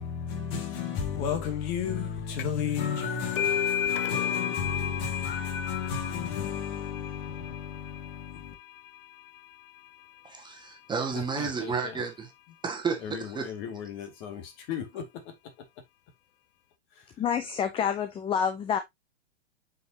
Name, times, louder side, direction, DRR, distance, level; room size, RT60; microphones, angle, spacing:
voice 1, 0.0-8.5 11.1-11.9 13.0-15.3, left 7 dB, 40° left, 2.3 m, -33 dB
sound 1, 2.4-2.7 3.0-10.3, left 9 dB, 55° left, 0.8 m, -34 dB
voice 2, 10.2-12.3 12.6-13.5, right 5 dB, 15° right, 1.7 m, -32 dB
voice 3, 17.2-18.8, left 7 dB, 15° left, 0.7 m, -28 dB
7.8 x 5.5 x 2.9 m
figure-of-eight pair, 110°, 33 cm